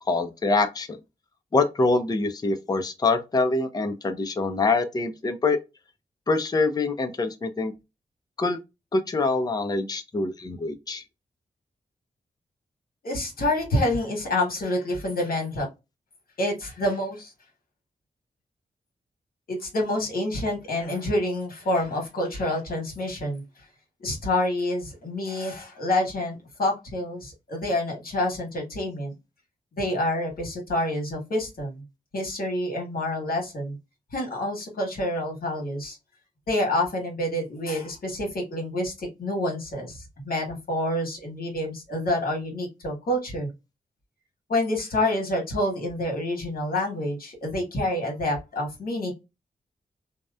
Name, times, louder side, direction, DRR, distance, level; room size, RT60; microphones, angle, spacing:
voice 1, 0.1-1.0 1.5-5.6 6.3-7.7 8.4-8.6 8.9-11.0, left 3 dB, 25° left, 0.5 m, -25 dB
voice 2, 13.0-15.6 16.4-17.3 19.5-23.4 24.0-29.1 29.8-31.8 32.1-33.7 34.1-36.0 36.5-43.5 44.5-49.1, left 1 dB, 70° left, 1.3 m, -27 dB
2.8 x 2.1 x 2.3 m
wide cardioid pair, 80°, 16 cm